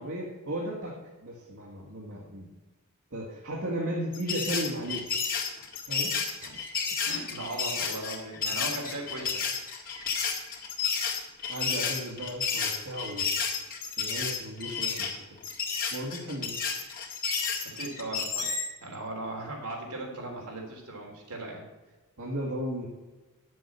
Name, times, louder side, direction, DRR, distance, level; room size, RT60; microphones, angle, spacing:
voice 1, 0.0-2.5 3.1-5.1 5.9-6.1 11.5-13.3 14.0-15.2 15.9-16.5 22.2-22.9, right 1 dB, 65° right, -4 dB, 2.1 m, -35 dB
sound 1, 4.1-18.7, left 5 dB, 40° left, 2.1 m, -31 dB
voice 2, 7.0-9.8 17.7-18.5 18.8-21.6, right 2 dB, 85° right, 0 dB, 3.4 m, -38 dB
9.9 x 7.7 x 6.8 m, 1.2 s
head